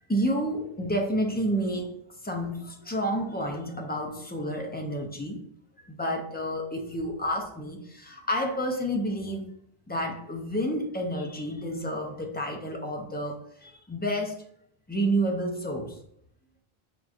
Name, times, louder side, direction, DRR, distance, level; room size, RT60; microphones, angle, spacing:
voice 1, 0.1-1.9 2.2-5.4 5.8-9.5 9.9-14.4 14.9-16.0, equal, 15° left, 1 dB, 0.4 m, -30 dB
6.0 x 2.6 x 2.4 m, 0.68 s
omnidirectional pair, 1.0 m